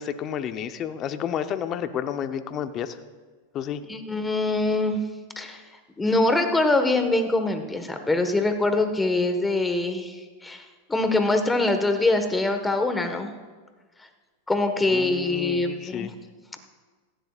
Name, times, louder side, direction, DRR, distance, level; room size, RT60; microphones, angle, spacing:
voice 1, 0.0-3.0 3.5-3.8 14.9-16.1, left 9 dB, 40° left, 10 dB, 0.8 m, -31 dB
voice 2, 3.9-5.0 5.4-5.6 6.0-13.3 14.5-16.1, left 2 dB, 10° left, 6 dB, 1.4 m, -24 dB
17.0 x 15.0 x 2.5 m, 1.4 s
hypercardioid pair, 105°, 0 cm